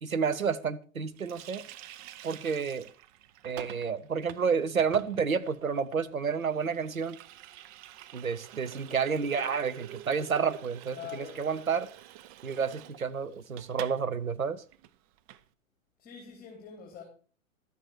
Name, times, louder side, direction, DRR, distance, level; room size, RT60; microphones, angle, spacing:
voice 1, 0.0-1.6 2.2-2.9 3.4-7.2 8.1-11.9 12.4-14.6, right 6 dB, 85° right, 1.0 m, -30 dB
Water tap faucet, 1.2-14.0 14.3-14.4 14.7-15.4, right 12 dB, 30° right, 0.6 m, -48 dB
voice 2, 10.9-11.7 16.0-17.0, left 7 dB, 20° left, 3.5 m, -44 dB
12.0 x 9.2 x 4.7 m
figure-of-eight pair, 110°, 40 cm